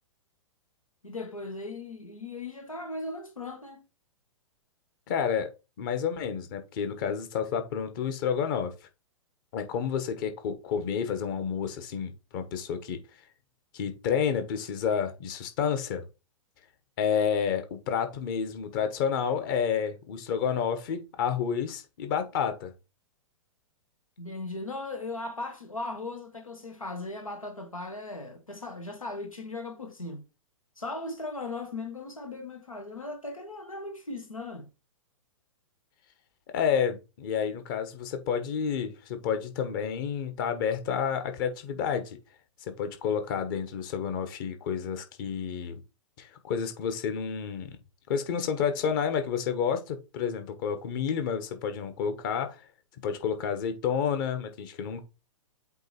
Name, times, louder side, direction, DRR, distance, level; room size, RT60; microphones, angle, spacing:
voice 1, 1.0-3.9 24.2-30.2 30.8-34.7, left 2 dB, 80° left, 1.5 m, -38 dB
voice 2, 5.1-5.5 5.8-8.7 9.5-13.0 13.7-16.0 17.0-22.7 36.5-42.2 42.7-45.8 46.2-47.8 48.1-52.6 53.0-55.0, left 7 dB, 40° left, 1.3 m, -30 dB
8.0 x 3.0 x 4.4 m
figure-of-eight pair, 110°, 17 cm